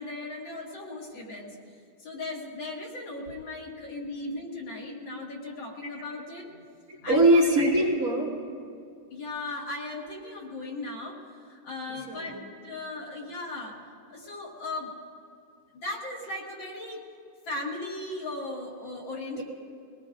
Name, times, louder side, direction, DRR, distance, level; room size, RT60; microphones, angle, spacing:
voice 1, 0.0-1.6 2.0-6.6 7.0-7.5 9.1-12.4 12.6-13.8 14.1-14.9 15.7-17.1 17.5-19.4, left 2 dB, 85° left, -2 dB, 2.6 m, -37 dB
voice 2, 6.9-8.3 11.9-12.4 19.3-19.4, right 1 dB, 50° right, -3 dB, 2.6 m, -22 dB
23.0 x 18.5 x 2.6 m, 2.4 s
omnidirectional pair, 2.0 m